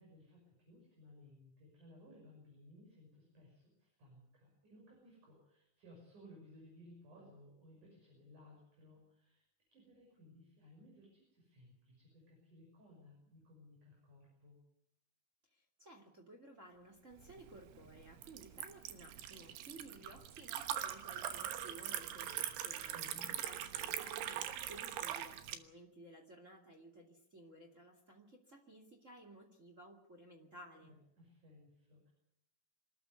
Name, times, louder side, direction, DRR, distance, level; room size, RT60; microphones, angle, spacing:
voice 1, 0.0-9.4 9.7-14.6 22.9-23.4 30.8-32.1, left 1 dB, 40° right, -1 dB, 7.6 m, -60 dB
voice 2, 15.5-30.9, right 1 dB, 25° right, 2 dB, 1.8 m, -57 dB
Liquid, 17.2-25.6, right 11 dB, 70° right, 3.0 m, -42 dB
26.0 x 13.5 x 9.6 m, 0.77 s
omnidirectional pair, 5.4 m